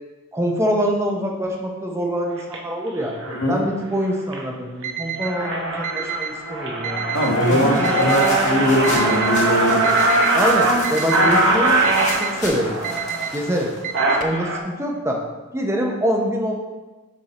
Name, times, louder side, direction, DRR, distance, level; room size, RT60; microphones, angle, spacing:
voice 1, 0.3-3.1 3.5-7.1 7.5-8.0 10.3-11.8 12.2-12.9 13.3-13.7 14.2-15.2 15.5-16.5, equal, 15° right, 0 dB, 0.8 m, -24 dB
sound 1, 2.4-2.6 3.2-3.5 3.9-4.4 4.8-4.9 5.2-14.6, right 2 dB, 65° right, 0.8 m, -21 dB
voice 2, 3.3-3.6 7.1-9.8, left 1 dB, 70° left, 0 dB, 1.2 m, -21 dB
Alarm, 4.8-5.3 5.8-6.3 6.8-7.3 7.8-8.3 8.8-9.3 9.8-10.3 10.8-11.3 11.8-12.3 12.8-13.3 13.8-14.4, right 8 dB, 40° right, 0.4 m, -29 dB
sound 2, 7.1-14.2, left 2 dB, 35° left, 1.1 m, -36 dB
6.5 x 3.7 x 4.1 m, 1.2 s
head